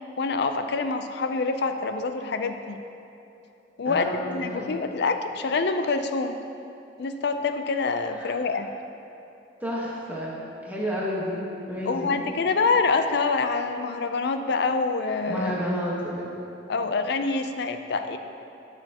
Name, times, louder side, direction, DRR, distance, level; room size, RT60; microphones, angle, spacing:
voice 1, 0.2-2.8 3.8-6.4 7.0-8.7 11.9-15.5 16.7-18.2, left 4 dB, 65° left, 8 dB, 0.5 m, -26 dB
voice 2, 3.8-4.8 8.1-8.5 9.6-10.4 10.6-12.2 15.3-16.3, equal, 10° right, -6 dB, 1.3 m, -31 dB
13.0 x 6.6 x 2.9 m, 2.9 s
head